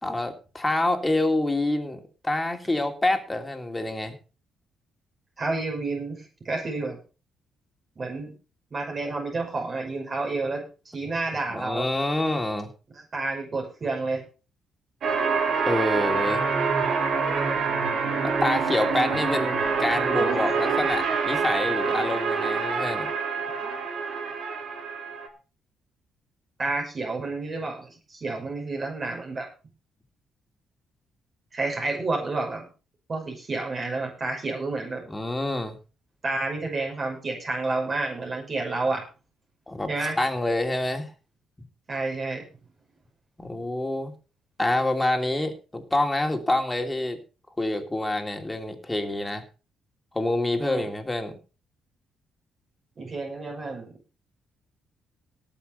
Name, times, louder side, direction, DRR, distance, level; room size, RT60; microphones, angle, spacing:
voice 1, 0.0-4.2 11.5-12.7 15.6-16.4 18.2-23.1 35.1-35.8 39.7-41.1 43.4-44.1 44.6-47.2 47.6-49.4 50.1-51.3, left 1 dB, 15° left, 5 dB, 2.7 m, -27 dB
voice 2, 5.4-7.0 8.0-8.3 8.7-11.9 12.9-14.2 26.6-29.5 31.5-32.7 33.1-35.0 36.2-39.0 39.9-40.2 41.9-42.4 50.6-50.9 53.0-54.0, right 3 dB, 40° right, 1 dB, 5.7 m, -30 dB
sound 1, 15.0-25.3, right 5 dB, 65° right, 3.3 m, -26 dB
18.5 x 6.2 x 5.4 m, 0.35 s
cardioid pair, 90°, 0 cm